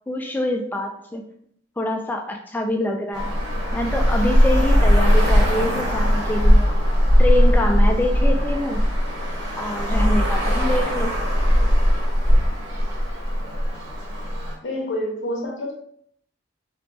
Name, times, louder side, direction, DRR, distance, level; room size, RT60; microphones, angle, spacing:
voice 1, 0.1-1.2 1.8-3.3 3.7-6.7 7.2-8.8 9.6-11.2, left 1 dB, 10° left, 2 dB, 0.3 m, -25 dB
Traffic noise roadway noise, 3.1-14.5, equal, 70° right, 1.1 m, -19 dB
voice 2, 14.6-15.7, left 1 dB, 65° left, -1 dB, 0.9 m, -27 dB
4.3 x 2.2 x 2.6 m, 0.68 s
head